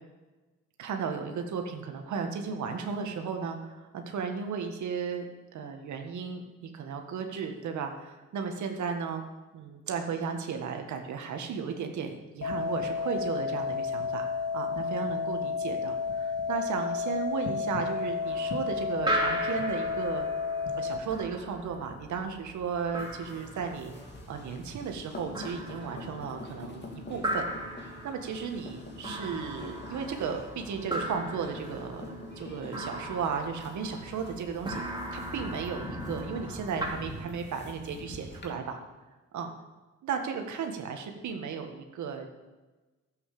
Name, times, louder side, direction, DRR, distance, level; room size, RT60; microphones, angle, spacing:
voice 1, 0.8-5.2 5.5-9.2 9.5-20.3 20.7-23.9 24.3-27.5 28.0-32.0 32.4-38.8 39.3-39.5 40.0-42.3, right 6 dB, 70° right, 4 dB, 1.6 m, -35 dB
sound 1, 12.4-21.0, left 5 dB, 50° left, 2.4 m, -31 dB
sound 2, 18.2-36.9, right 1 dB, 15° right, 2.9 m, -38 dB
sound 3, 23.0-38.5, left 2 dB, 35° left, 2.6 m, -45 dB
11.0 x 8.2 x 6.8 m, 1.2 s
cardioid pair, 90°, 30 cm